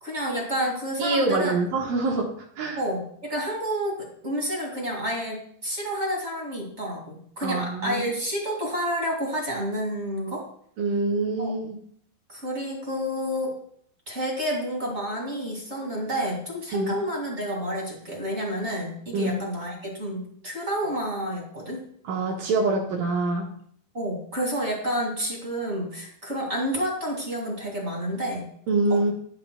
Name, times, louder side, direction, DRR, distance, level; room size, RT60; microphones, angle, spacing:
voice 1, 0.0-1.5 2.7-10.5 11.4-11.5 12.3-13.5 14.1-21.8 23.9-28.5 28.9-29.0, equal, 30° right, -1 dB, 1.3 m, -29 dB
voice 2, 1.0-2.3 2.6-2.8 7.4-8.1 10.8-11.8 16.7-17.0 19.1-19.4 22.0-23.5 28.7-29.1, right 3 dB, 70° right, 0 dB, 2.6 m, -25 dB
17.5 x 7.5 x 2.2 m, 0.64 s
omnidirectional pair, 4.7 m